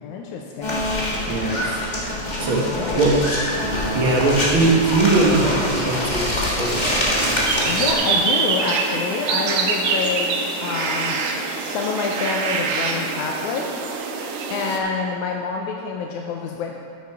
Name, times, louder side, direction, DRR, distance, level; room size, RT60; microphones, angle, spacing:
voice 1, 0.0-0.8 2.7-3.1 3.5-3.7 7.7-11.2 11.7-13.7 14.5-16.7, left 5 dB, 90° left, 1 dB, 2.1 m, -27 dB
sound 1, 0.6-7.9, left 1 dB, 35° left, 0.7 m, -24 dB
voice 2, 1.2-1.8 2.4-2.6 2.9-3.1 3.9-6.3 6.5-6.8, right 3 dB, 50° right, -3 dB, 1.9 m, -20 dB
sound 2, 6.6-14.8, right 4 dB, 85° right, 2.3 m, -25 dB
9.5 x 8.2 x 4.6 m, 2.4 s
omnidirectional pair, 3.4 m